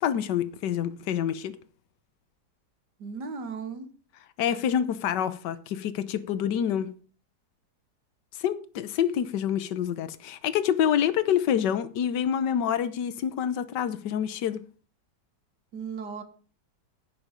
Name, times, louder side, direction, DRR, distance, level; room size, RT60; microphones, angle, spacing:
voice 1, 0.0-1.5 4.4-6.9 8.4-14.6, left 9 dB, 80° left, 1.5 m, -27 dB
voice 2, 3.0-3.9 15.7-16.2, right 5 dB, 75° right, 2.1 m, -36 dB
11.5 x 9.5 x 5.1 m
omnidirectional pair, 1.9 m